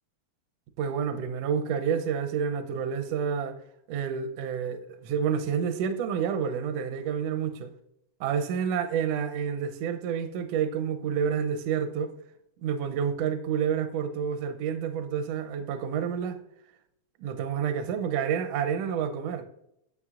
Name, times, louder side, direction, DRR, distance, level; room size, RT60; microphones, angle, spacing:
voice 1, 0.8-3.6 3.9-7.7 8.2-12.2 12.6-16.4 17.2-19.5, right 7 dB, 75° right, 1.6 m, -29 dB
9.6 x 7.3 x 2.4 m
omnidirectional pair, 3.4 m